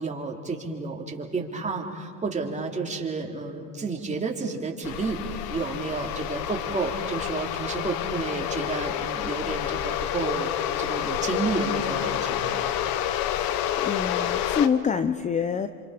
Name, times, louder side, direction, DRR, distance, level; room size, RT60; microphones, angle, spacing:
voice 1, 0.0-5.2 5.5-10.5 10.8-12.6, right 4 dB, 20° right, 0 dB, 3.4 m, -31 dB
sound 1, 4.8-14.7, left 11 dB, 60° left, 1.2 m, -29 dB
voice 2, 13.2-15.7, left 7 dB, 20° left, 12 dB, 0.6 m, -27 dB
28.5 x 27.0 x 5.1 m, 2.5 s
supercardioid pair, 95°, 39 cm